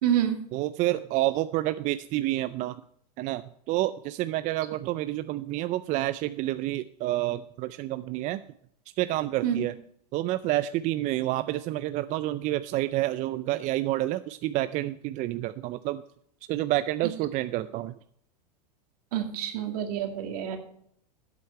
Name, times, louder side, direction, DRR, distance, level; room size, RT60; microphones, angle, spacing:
voice 1, 0.0-0.4 9.4-9.6 19.1-20.6, right 10 dB, 65° right, 5 dB, 2.2 m, -27 dB
voice 2, 0.5-2.8 3.2-3.4 3.7-8.4 9.0-9.7 10.1-16.0 16.5-17.9, right 15 dB, 35° right, 13 dB, 0.5 m, -29 dB
12.5 x 8.3 x 4.5 m, 0.68 s
hypercardioid pair, 115°, 21 cm